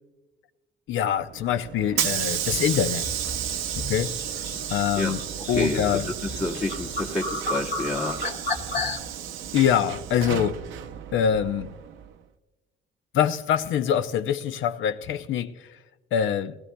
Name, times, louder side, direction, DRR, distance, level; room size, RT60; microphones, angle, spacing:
voice 1, 0.9-3.0 3.9-4.1 4.7-5.2 5.5-6.1 9.5-10.6 11.1-11.7 13.1-15.6 16.1-16.6, left 9 dB, 80° left, 0.6 m, -24 dB
Hiss / Sliding door, 1.3-12.1, right 10 dB, 85° right, 0.7 m, -32 dB
sound 1, 2.0-9.0, left 2 dB, 55° left, 2.1 m, -34 dB
voice 2, 5.5-6.0 6.3-8.2, left 2 dB, 35° left, 1.6 m, -28 dB
19.5 x 15.5 x 2.2 m
cardioid pair, 90°, 20 cm